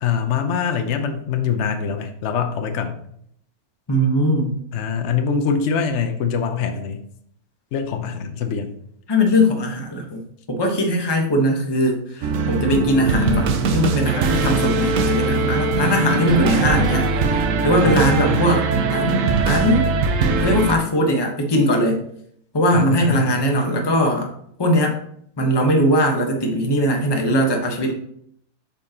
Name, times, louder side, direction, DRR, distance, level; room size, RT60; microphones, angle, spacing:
voice 1, 0.0-3.0 4.7-7.0 7.7-8.7 17.8-18.6 22.7-23.5, left 6 dB, 55° left, 6 dB, 1.0 m, -24 dB
voice 2, 3.9-4.5 9.1-10.2 10.5-17.1 17.6-18.6 18.9-19.9 20.4-22.0 22.5-24.3 24.6-24.9 25.4-27.9, equal, 20° left, 2 dB, 1.0 m, -20 dB
sound 1, 12.2-20.8, right 4 dB, 65° right, 1.0 m, -20 dB
8.3 x 5.5 x 2.9 m, 0.69 s
omnidirectional pair, 1.6 m